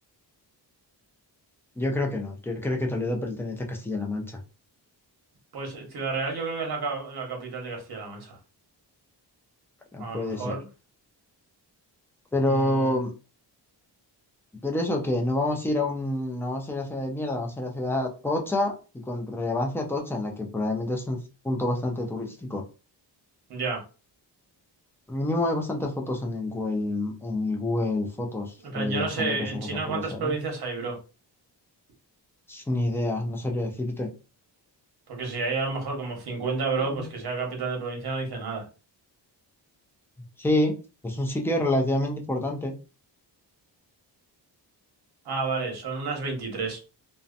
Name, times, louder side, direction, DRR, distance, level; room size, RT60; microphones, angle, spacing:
voice 1, 1.8-4.4 9.9-10.6 12.3-13.1 14.6-18.7 19.1-21.2 21.4-22.6 25.1-30.3 32.5-34.1 36.8-37.1 40.4-40.7 41.0-42.7, left 1 dB, 5° left, 1 dB, 0.3 m, -28 dB
voice 2, 5.5-8.4 10.0-10.7 12.4-13.0 23.5-23.8 28.7-31.0 35.1-38.6 45.2-46.8, right 4 dB, 60° right, 1 dB, 1.0 m, -31 dB
2.6 x 2.1 x 2.4 m, 0.33 s
wide cardioid pair, 165°, 43 cm